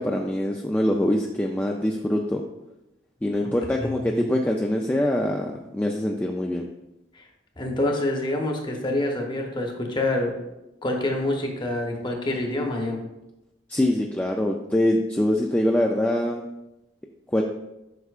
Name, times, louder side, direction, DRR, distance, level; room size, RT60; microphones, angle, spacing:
voice 1, 0.0-2.4 3.2-6.7 13.7-16.4 17.3-17.4, left 1 dB, 10° left, 0 dB, 0.4 m, -24 dB
voice 2, 3.8-4.2 7.1-7.2 7.6-10.3 10.8-13.0, left 1 dB, 25° left, 2 dB, 1.0 m, -26 dB
8.0 x 5.8 x 2.4 m, 0.93 s
head